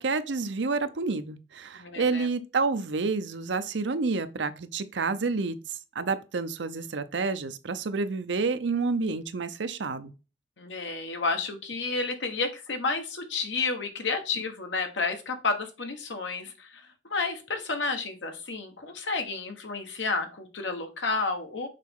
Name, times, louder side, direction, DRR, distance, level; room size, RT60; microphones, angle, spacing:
voice 1, 0.0-10.1, right 4 dB, 75° right, 0.7 m, -29 dB
voice 2, 1.7-2.3 10.6-21.7, left 4 dB, 80° left, 1.3 m, -31 dB
6.6 x 4.2 x 3.7 m
head